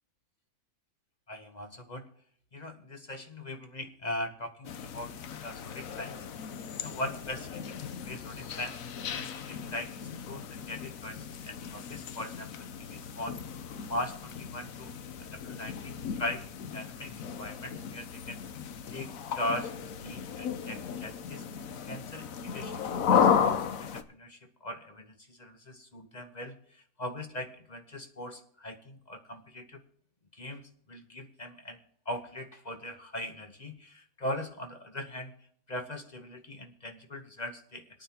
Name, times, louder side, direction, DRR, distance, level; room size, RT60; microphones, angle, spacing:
voice 1, 1.3-2.1 2.5-5.2 5.4-6.3 6.8-13.4 13.9-18.4 18.9-21.5 21.8-22.7 23.1-29.8 30.3-31.8 32.1-35.3 35.7-38.0, left 1 dB, 35° left, 5 dB, 0.9 m, -40 dB
sound 1, 4.6-24.0, left 7 dB, 70° left, 1.1 m, -34 dB
26.5 x 9.1 x 2.9 m, 0.63 s
omnidirectional pair, 1.5 m